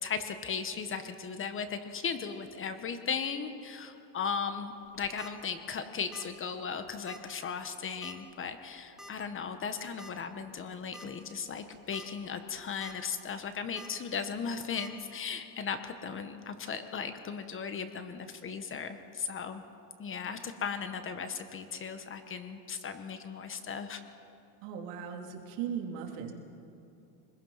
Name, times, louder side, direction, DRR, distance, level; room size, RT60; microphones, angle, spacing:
voice 1, 0.0-19.6 20.0-24.0, left 6 dB, 25° left, 9 dB, 1.2 m, -37 dB
sound 1, 4.9-5.3 6.1-6.4 6.6-6.7 7.1-7.2 8.0-8.3 9.0-9.1 10.0-10.1 10.6-10.7 10.9-11.1 11.7-12.1 12.5-12.9 13.8-13.9 14.8-14.9, left 1 dB, ahead, 1.4 m, -48 dB
voice 2, 24.6-26.3, right 8 dB, 70° right, 2 dB, 3.0 m, -38 dB
25.0 x 20.5 x 5.8 m, 2.6 s
supercardioid pair, 140°, 46 cm